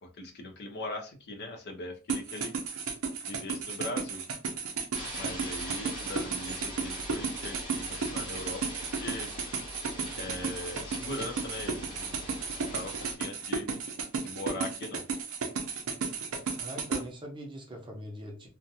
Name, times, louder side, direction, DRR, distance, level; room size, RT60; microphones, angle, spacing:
voice 1, 0.0-2.5 3.2-4.2 5.1-9.3 10.2-13.7 14.2-15.0, left 1 dB, 50° left, 4 dB, 0.5 m, -40 dB
sound 1, 2.1-17.0, right 5 dB, 65° right, 0.5 m, -33 dB
sound 2, 4.9-13.2, left 1 dB, 20° left, 1.0 m, -42 dB
voice 2, 16.6-18.5, equal, 20° right, 0 dB, 0.6 m, -42 dB
2.4 x 2.1 x 2.7 m, 0.34 s
head